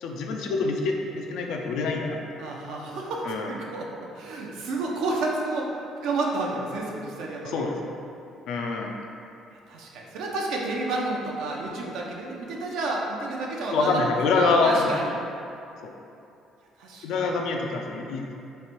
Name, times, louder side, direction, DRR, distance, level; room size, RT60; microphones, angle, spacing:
voice 1, 0.0-2.2 3.2-3.5 7.4-8.0 8.5-8.9 13.7-14.9 15.8-15.9 17.0-18.2, left 3 dB, 75° left, 1 dB, 0.4 m, -25 dB
voice 2, 2.4-7.9 9.7-14.0 14.4-15.1 16.8-17.0, right 2 dB, 75° right, -2 dB, 0.6 m, -31 dB
3.2 x 2.5 x 4.3 m, 2.6 s
supercardioid pair, 75°, 0 cm